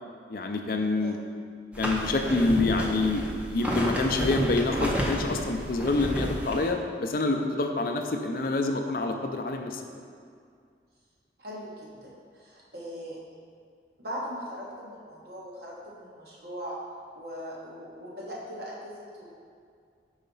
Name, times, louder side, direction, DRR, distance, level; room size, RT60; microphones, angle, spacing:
voice 1, 0.3-1.2 1.8-9.8, left 2 dB, 55° left, 4 dB, 0.4 m, -27 dB
sound 1, 1.7-6.7, equal, 5° right, 0.5 m, -31 dB
voice 2, 11.4-13.2 14.0-16.8 17.1-19.4, equal, 65° right, -5 dB, 1.4 m, -40 dB
5.6 x 4.0 x 5.4 m, 2.2 s
head